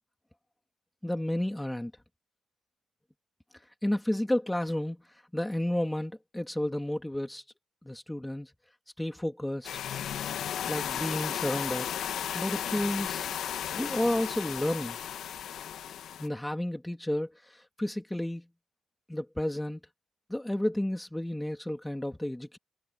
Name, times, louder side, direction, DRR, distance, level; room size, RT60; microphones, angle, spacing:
voice 1, 1.0-1.9 3.8-5.0 5.3-7.4 7.8-8.5 9.0-9.7 10.7-11.9 12.3-13.3 13.8-15.0 16.2-18.4 19.1-19.8 20.3-22.6, left 1 dB, 5° left, 2.7 m, -31 dB
sound 1, 9.6-16.3, left 10 dB, 70° left, 0.9 m, -34 dB
cardioid pair, 120°, 0 cm